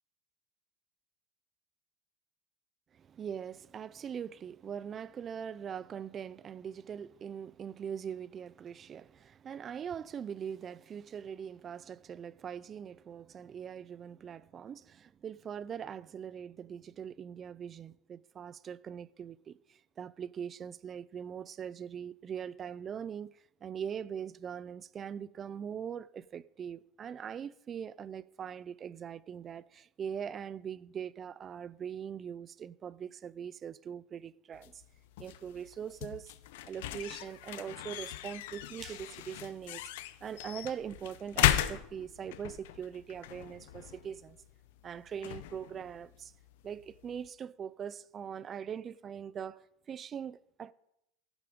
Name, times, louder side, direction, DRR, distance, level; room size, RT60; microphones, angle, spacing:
voice 1, 2.9-34.8 35.2-36.3 36.7-39.8 40.2-44.4 44.8-46.3 46.6-50.7, right 8 dB, 25° right, 0.4 m, -42 dB
sound 1, 34.5-47.3, left 13 dB, 85° left, 0.8 m, -37 dB
14.5 x 11.0 x 5.1 m
supercardioid pair, 165°, 0 cm